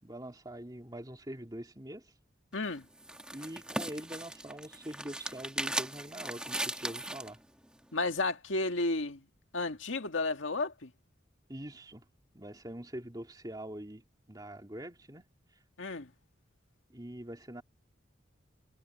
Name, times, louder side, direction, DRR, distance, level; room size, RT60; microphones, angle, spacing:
voice 1, 0.0-2.1 3.3-7.4 11.5-12.1 12.3-15.2 16.9-17.6, right 1 dB, 20° right, 2.7 m, -44 dB
voice 2, 2.5-2.9 7.9-9.2 9.5-10.9 15.8-16.1, left 2 dB, 90° left, 1.9 m, -32 dB
sound 1, 2.5-7.3, right 1 dB, 5° right, 1.2 m, -38 dB
head